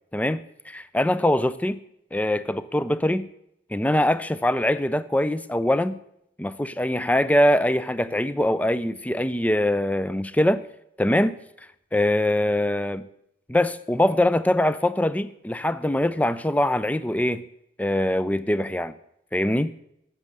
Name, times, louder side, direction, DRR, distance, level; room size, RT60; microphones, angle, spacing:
voice 1, 0.7-1.8 2.1-3.3 3.7-6.0 6.4-10.6 11.0-11.4 11.9-13.0 13.5-17.4 17.8-18.9 19.3-19.7, left 1 dB, 5° left, 0.4 m, -23 dB
11.5 x 7.5 x 8.1 m
head